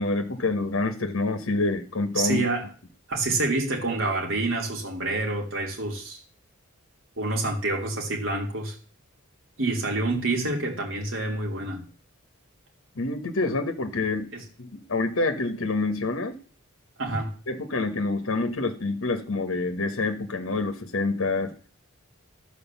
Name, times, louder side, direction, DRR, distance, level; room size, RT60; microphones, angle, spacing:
voice 1, 0.0-2.4 12.9-14.3 14.6-16.4 17.5-21.5, left 3 dB, 75° left, 7 dB, 1.2 m, -27 dB
voice 2, 2.2-2.7 3.1-6.2 7.2-8.7 9.6-11.8 14.3-14.4 17.0-17.3, right 2 dB, 70° right, 0 dB, 2.9 m, -27 dB
12.5 x 4.9 x 7.1 m, 0.41 s
head